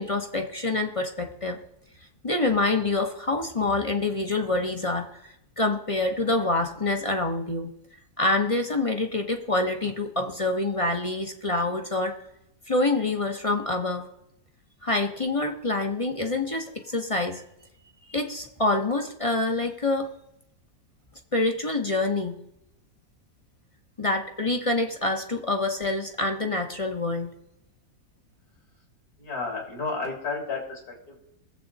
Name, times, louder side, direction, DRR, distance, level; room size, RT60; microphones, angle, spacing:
voice 1, 0.0-1.6 2.2-7.7 8.2-12.2 12.7-14.1 14.8-17.4 18.1-20.1 21.3-22.4 24.0-27.3, left 2 dB, 25° left, 4 dB, 1.0 m, -26 dB
voice 2, 29.2-31.2, left 4 dB, 65° left, 0 dB, 4.0 m, -32 dB
20.5 x 7.8 x 4.1 m, 0.82 s
omnidirectional pair, 1.7 m